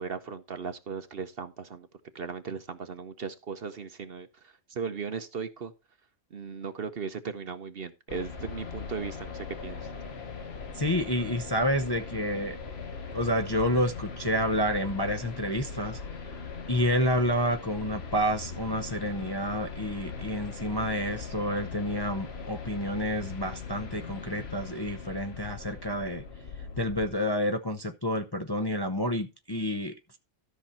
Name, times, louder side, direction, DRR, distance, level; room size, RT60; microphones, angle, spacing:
voice 1, 0.0-1.9 2.1-5.7 6.3-9.8, right 6 dB, 50° right, 1.0 m, -37 dB
sound 1, 8.1-27.1, left 5 dB, 50° left, 1.4 m, -40 dB
voice 2, 10.7-12.6 13.1-16.0 16.7-26.2 26.8-30.2, equal, 25° left, 0.6 m, -29 dB
13.5 x 5.9 x 4.2 m
omnidirectional pair, 1.4 m